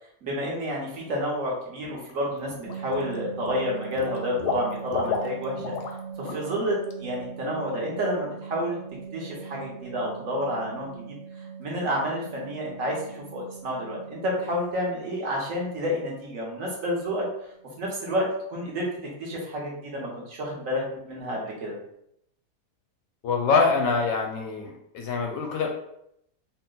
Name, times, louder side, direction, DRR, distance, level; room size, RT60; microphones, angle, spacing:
voice 1, 0.2-5.6 6.2-8.8 9.1-11.2 11.6-17.2 17.8-18.9 19.2-21.8, equal, 60° right, -3 dB, 1.3 m, -30 dB
Water / Liquid, 1.8-2.1 2.5-3.2 3.5-6.0 6.3-6.5 6.8-6.9, left 5 dB, 85° left, 1.2 m, -32 dB
sound 1, 2.6-14.7 16.6-16.8 17.1-17.2 17.6-17.8 18.0-18.3, right 6 dB, 90° right, 1.7 m, -40 dB
voice 2, 23.2-25.7, left 4 dB, 70° left, 2 dB, 0.9 m, -24 dB
3.8 x 2.2 x 3.8 m, 0.75 s
omnidirectional pair, 1.7 m